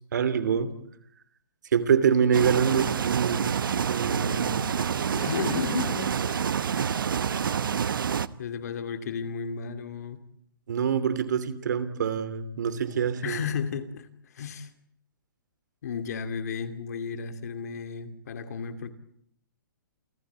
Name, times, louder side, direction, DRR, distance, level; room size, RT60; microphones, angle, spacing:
voice 1, 0.1-0.7 1.7-3.5 3.9-4.6 10.7-13.4, right 7 dB, 55° right, 13 dB, 2.7 m, -25 dB
sound 1, 2.3-8.3, right 7 dB, 75° right, 1.1 m, -27 dB
voice 2, 5.1-6.2 8.4-10.2 13.2-14.1 14.3-14.7 15.8-18.9, left 6 dB, 50° left, 10 dB, 2.5 m, -33 dB
29.0 x 16.0 x 9.4 m, 0.68 s
hypercardioid pair, 175°, 11 cm